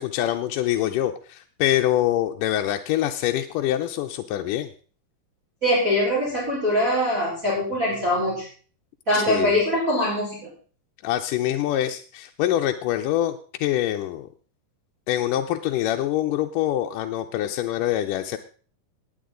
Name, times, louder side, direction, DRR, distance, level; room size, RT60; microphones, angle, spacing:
voice 1, 0.0-4.7 9.1-9.6 11.0-14.3 15.1-18.4, left 12 dB, 75° left, 4 dB, 2.1 m, -25 dB
voice 2, 5.6-8.5 9.1-10.4, left 1 dB, 20° right, -6 dB, 4.7 m, -22 dB
19.0 x 9.5 x 3.8 m, 0.41 s
omnidirectional pair, 4.0 m